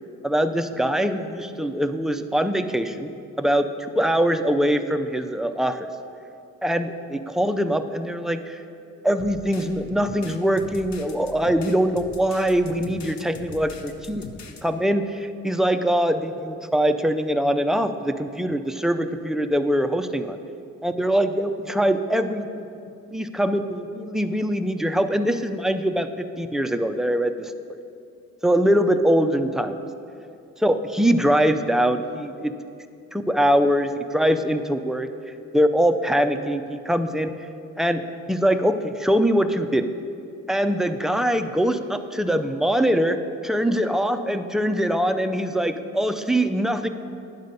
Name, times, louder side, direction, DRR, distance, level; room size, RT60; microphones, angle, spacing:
voice 1, 0.2-3.1 3.4-3.7 3.9-5.9 6.6-8.6 9.0-14.2 14.6-20.4 20.8-22.7 23.1-27.5 28.4-29.8 30.6-32.5 33.1-35.1 35.5-37.3 37.8-39.9 40.5-46.9, equal, ahead, 7 dB, 0.3 m, -23 dB
sound 1, 9.2-14.6, left 3 dB, 65° left, 0.8 m, -41 dB
9.6 x 3.9 x 6.6 m, 2.5 s
cardioid pair, 90°, 30 cm